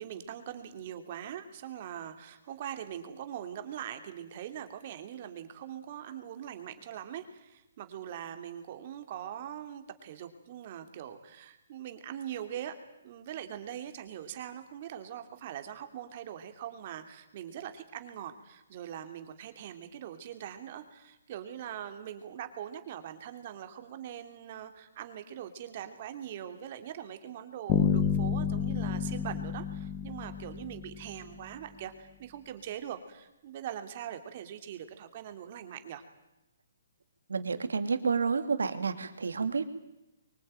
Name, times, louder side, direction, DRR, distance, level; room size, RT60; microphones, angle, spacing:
voice 1, 0.0-12.7 13.0-36.0, right 10 dB, 40° right, 8 dB, 2.9 m, -42 dB
Bass guitar, 27.7-31.5, left 8 dB, 25° left, 2.0 m, -30 dB
voice 2, 37.3-39.6, right 5 dB, 85° right, 10 dB, 2.7 m, -30 dB
23.5 x 23.0 x 9.1 m, 0.90 s
hypercardioid pair, 150°, 0 cm